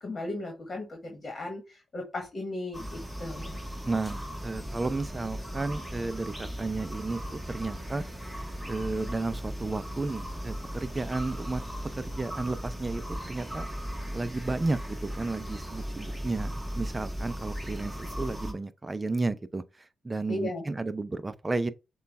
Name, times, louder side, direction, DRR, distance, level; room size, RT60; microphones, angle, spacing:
voice 1, 0.0-3.6 20.3-20.6, left 2 dB, 40° left, 1.4 m, -36 dB
sound 1, 2.7-18.5, equal, 5° right, 1.4 m, -37 dB
voice 2, 3.9-8.1 8.7-11.6 12.1-13.7 14.1-19.6 20.0-21.7, right 3 dB, 25° right, 0.5 m, -33 dB
6.6 x 2.3 x 3.4 m
supercardioid pair, 55°, 0 cm